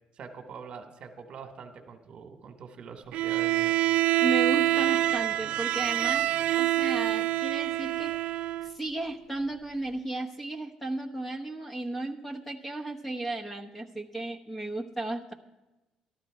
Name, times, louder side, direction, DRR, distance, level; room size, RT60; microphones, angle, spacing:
voice 1, 0.2-3.8, right 6 dB, 55° right, 7 dB, 1.3 m, -44 dB
Bowed string instrument, 3.1-8.7, right 15 dB, 75° right, 0.3 m, -26 dB
voice 2, 4.2-6.3 6.6-8.1 8.6-15.3, right 2 dB, 10° left, 3 dB, 1.0 m, -34 dB
13.5 x 11.5 x 4.8 m, 1.1 s
cardioid pair, 120°, 2 cm